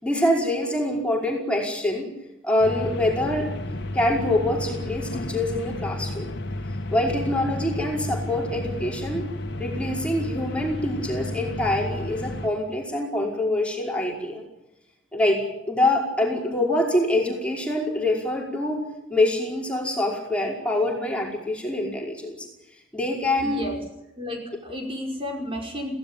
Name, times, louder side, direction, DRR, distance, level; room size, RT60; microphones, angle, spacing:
voice 1, 0.0-2.1 2.4-3.5 3.9-6.3 6.9-9.2 9.6-14.4 15.1-18.8 19.1-22.5 22.9-23.6, left 1 dB, 5° left, -2 dB, 5.3 m, -25 dB
sound 1, 2.6-12.5, left 1 dB, 60° left, 2.3 m, -32 dB
voice 2, 23.4-23.8 24.2-25.9, left 1 dB, 30° right, 1 dB, 5.6 m, -32 dB
27.0 x 17.0 x 9.1 m, 0.91 s
head